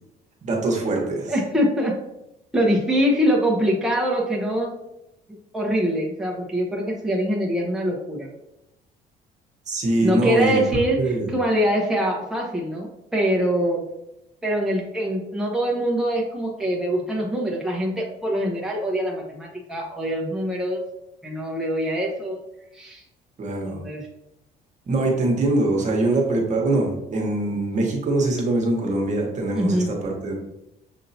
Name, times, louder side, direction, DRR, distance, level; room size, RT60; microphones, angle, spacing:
voice 1, 0.4-1.3 9.7-10.6 11.0-11.3 23.4-23.8 24.9-30.3, right 2 dB, 45° right, 0 dB, 1.2 m, -23 dB
voice 2, 1.3-1.9 2.5-4.7 5.5-8.3 10.0-13.8 14.4-20.8 21.2-22.4 22.7-23.0 23.7-24.0 29.5-29.9, equal, 5° right, -2 dB, 0.9 m, -23 dB
6.6 x 2.8 x 2.7 m, 0.86 s
cardioid pair, 110°, 17 cm